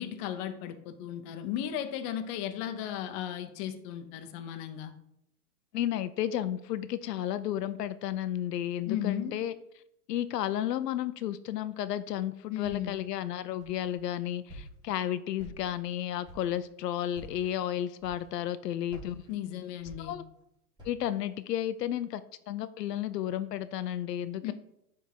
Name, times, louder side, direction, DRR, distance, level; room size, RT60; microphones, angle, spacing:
voice 1, 0.0-4.9 8.9-9.4 12.5-13.0 19.3-20.2 24.4-24.5, left 10 dB, 35° left, 8 dB, 0.8 m, -35 dB
voice 2, 5.7-9.5 10.1-19.2 20.0-20.2 20.8-22.2 22.5-24.5, left 11 dB, 80° left, 13 dB, 0.6 m, -32 dB
Walk footsteps, 12.6-13.1 13.6-14.1 14.5-15.0 15.4-15.9 16.2-16.6 17.1-17.5 18.0-18.5 18.9-20.4 20.8-21.2, right 1 dB, 10° right, 2.6 m, -49 dB
9.0 x 3.6 x 4.6 m, 0.78 s
hypercardioid pair, 125°, 48 cm